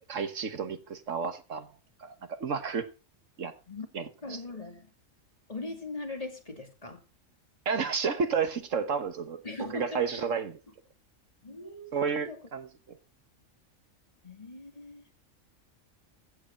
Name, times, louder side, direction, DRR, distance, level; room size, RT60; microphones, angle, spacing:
voice 1, 0.1-1.7 2.0-2.9 3.4-3.5 3.9-4.4 7.6-9.4 9.7-10.6 11.9-13.0, right 6 dB, 70° right, 1.6 m, -31 dB
voice 2, 4.2-4.9 5.5-7.0 9.4-10.2 11.4-12.5 14.2-15.1, left 2 dB, 30° left, 2.4 m, -40 dB
15.5 x 8.2 x 4.4 m
omnidirectional pair, 1.4 m